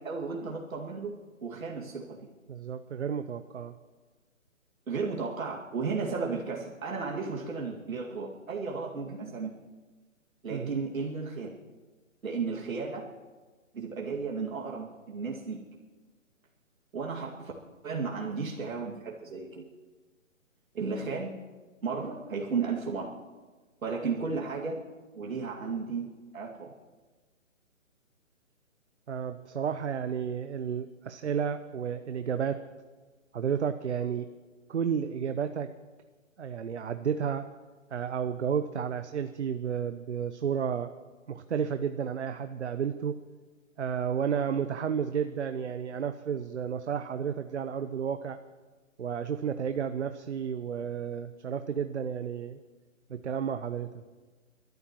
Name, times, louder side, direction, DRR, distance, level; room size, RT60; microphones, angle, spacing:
voice 1, 0.0-2.2 4.9-9.6 10.4-11.5 12.2-13.0 13.7-15.6 16.9-17.5 17.8-19.7 20.7-21.4 21.8-23.1 23.8-24.8 25.1-26.7, right 4 dB, 80° right, -2 dB, 2.3 m, -34 dB
voice 2, 2.5-3.7 10.5-10.8 29.1-32.6 33.3-34.3 34.7-35.7 36.4-37.5 37.9-40.9 41.3-43.1 43.8-48.4 49.0-52.6 53.1-53.9, right 7 dB, 55° right, 10 dB, 0.8 m, -32 dB
28.0 x 13.0 x 3.1 m, 1.3 s
hypercardioid pair, 175°, 40 cm